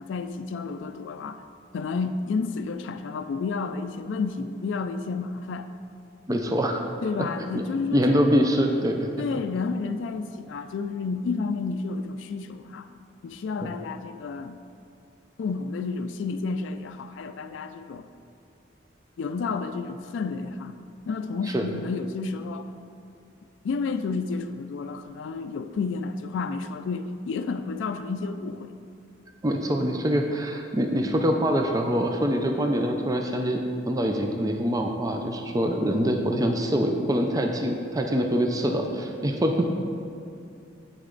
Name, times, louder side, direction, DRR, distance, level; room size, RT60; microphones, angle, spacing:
voice 1, 0.0-1.4 1.7-5.7 7.0-8.3 9.2-12.9 13.2-14.6 15.4-18.1 19.2-20.8 21.1-22.7 23.6-28.7, left 4 dB, 75° left, 9 dB, 0.3 m, -31 dB
voice 2, 6.3-6.9 7.2-7.3 7.5-7.6 7.9-9.1 13.6-13.7 21.5-21.7 29.4-39.7, equal, 20° right, 3 dB, 0.4 m, -24 dB
8.1 x 6.5 x 3.8 m, 2.5 s
head